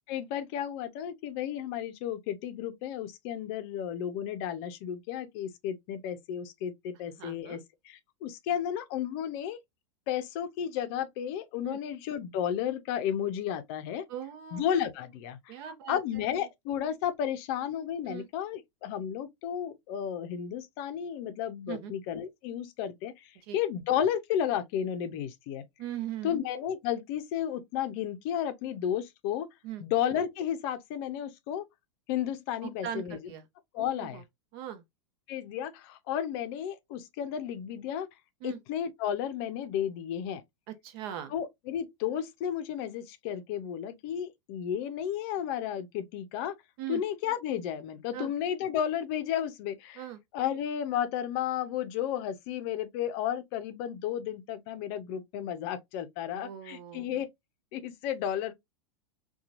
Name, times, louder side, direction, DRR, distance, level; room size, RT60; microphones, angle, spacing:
voice 1, 0.1-9.6 10.1-14.0 14.5-15.5 15.9-25.6 26.2-29.5 29.8-31.7 32.1-33.2 33.7-34.2 35.3-38.1 38.4-40.4 41.3-46.6 46.9-50.0 50.3-57.3 57.7-58.5, left 9 dB, 50° left, 0.5 m, -33 dB
voice 2, 7.2-7.6 11.7-11.8 14.1-14.6 15.5-16.0 16.3-16.5 18.1-18.3 21.7-21.9 23.4-23.6 25.8-26.4 29.6-29.8 32.6-33.5 33.8-34.2 34.5-34.8 38.4-38.6 40.7-41.3 46.8-47.0 48.1-48.3 50.0-50.2 56.3-57.1, right 11 dB, 50° right, 0.7 m, -40 dB
2.8 x 2.3 x 2.4 m
hypercardioid pair, 105°, 16 cm